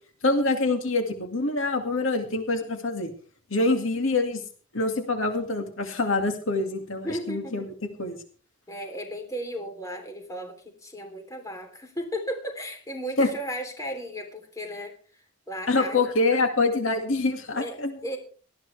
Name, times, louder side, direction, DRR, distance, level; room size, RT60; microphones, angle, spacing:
voice 1, 0.2-3.1 3.5-4.4 4.7-7.6 8.0-8.2 13.2-13.3 15.7-18.0, left 2 dB, 80° left, 5 dB, 2.3 m, -25 dB
voice 2, 7.0-7.7 8.7-16.1 17.5-17.8 18.0-18.2, equal, 15° left, 4 dB, 3.4 m, -35 dB
19.0 x 14.0 x 3.4 m, 0.41 s
head